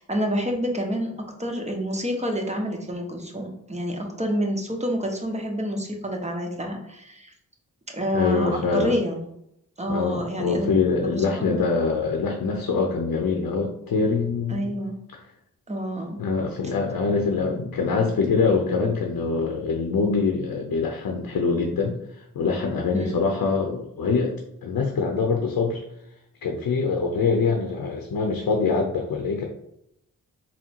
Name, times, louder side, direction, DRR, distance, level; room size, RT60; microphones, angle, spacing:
voice 1, 0.0-7.3 7.9-9.2 9.8-10.7 11.0-11.6 14.5-15.0 15.7-16.2 22.9-23.2, equal, 20° right, 2 dB, 0.9 m, -28 dB
voice 2, 8.1-9.0 9.9-14.7 16.2-24.3 24.6-25.8 26.4-29.5, left 4 dB, 70° left, 2 dB, 0.7 m, -24 dB
3.7 x 2.1 x 4.4 m, 0.77 s
cardioid pair, 55°, 36 cm